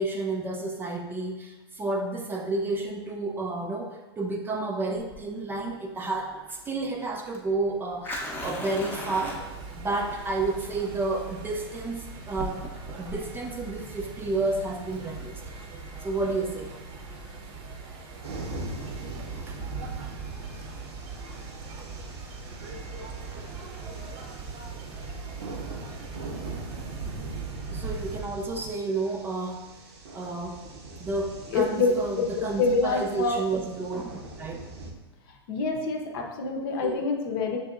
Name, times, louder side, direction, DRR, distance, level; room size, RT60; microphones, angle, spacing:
voice 1, 0.0-6.4 6.7-9.5 9.7-12.7 12.9-15.4 16.0-16.7 19.3-19.6 27.7-29.7 30.1-30.7 31.0-34.1 34.4-34.6 36.8-37.0, right 2 dB, 15° right, 2 dB, 0.4 m, -31 dB
Fire, 5.0-16.0, left 1 dB, 15° left, 0.7 m, -40 dB
sound 1, 9.2-28.2, right 4 dB, 40° right, 0.7 m, -41 dB
sound 2, 18.2-34.9, right 3 dB, 70° right, 0.8 m, -40 dB
voice 2, 31.5-31.9 32.2-33.4 35.5-37.6, left 4 dB, 55° left, 2 dB, 0.7 m, -26 dB
6.5 x 2.7 x 2.4 m, 1.1 s
hypercardioid pair, 105°, 14 cm